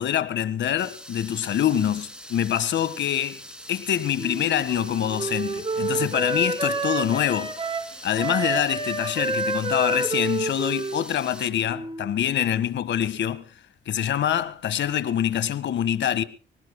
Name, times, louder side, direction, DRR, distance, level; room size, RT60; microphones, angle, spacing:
voice 1, 0.0-3.4 3.7-7.5 8.0-13.4 13.9-16.2, left 10 dB, 65° left, 1.6 m, -25 dB
sound 1, 0.8-11.5, equal, 5° right, 2.7 m, -43 dB
Wind instrument woodwind instrument, 4.2-12.2, right 3 dB, 25° right, 2.7 m, -29 dB
25.5 x 18.0 x 2.2 m
cardioid pair, 90°, 20 cm